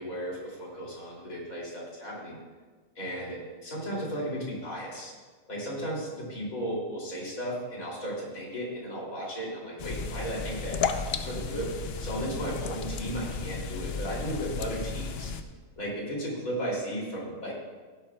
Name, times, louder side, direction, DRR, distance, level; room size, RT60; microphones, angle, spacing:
voice 1, 0.0-2.4 3.0-5.1 5.5-11.7 12.0-15.3 15.8-17.5, equal, 85° left, -4 dB, 3.5 m, -35 dB
sound 1, 9.8-15.4, left 5 dB, 55° left, 0.8 m, -34 dB
16.0 x 11.5 x 2.3 m, 1.4 s
omnidirectional pair, 1.4 m